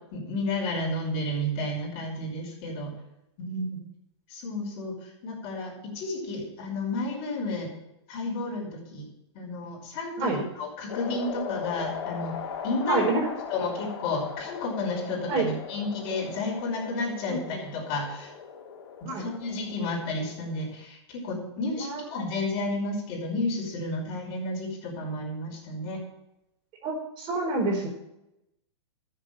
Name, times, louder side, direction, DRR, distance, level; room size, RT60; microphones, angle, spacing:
voice 1, 0.1-2.9 3.4-3.8 4.3-4.9 5.2-7.7 8.1-9.1 9.3-12.3 12.6-13.1 13.5-18.3 19.0-26.0, left 2 dB, 40° left, -1 dB, 5.5 m, -31 dB
sound 1, 10.9-20.7, left 7 dB, 60° left, 3.0 m, -39 dB
voice 2, 12.9-13.3 15.3-15.5 17.3-17.6 19.0-19.3 21.8-22.0 26.8-27.9, right 3 dB, 35° right, 0 dB, 4.4 m, -27 dB
13.0 x 7.5 x 7.4 m, 0.87 s
hypercardioid pair, 135°, 15 cm